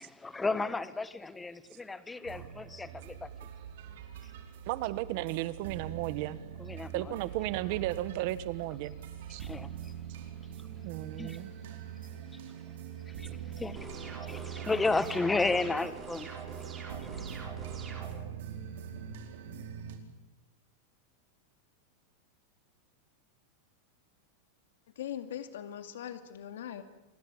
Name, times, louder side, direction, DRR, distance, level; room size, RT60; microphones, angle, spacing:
voice 1, 0.0-3.5 6.6-7.1 9.4-9.9 11.2-11.4 12.3-12.4 13.0-16.3 17.0-17.1, left 3 dB, 5° left, 14 dB, 1.1 m, -33 dB
sound 1, 2.2-20.0, right 9 dB, 65° right, 4.8 m, -43 dB
voice 2, 4.7-6.4 6.9-8.9 9.3-9.4 10.8-11.5, right 16 dB, 45° right, 15 dB, 1.4 m, -34 dB
sound 2, 13.8-18.1, right 4 dB, 15° right, 5.1 m, -44 dB
voice 3, 25.0-26.8, left 10 dB, 90° left, 8 dB, 2.4 m, -40 dB
27.0 x 21.0 x 8.9 m, 0.97 s
supercardioid pair, 175°, 0 cm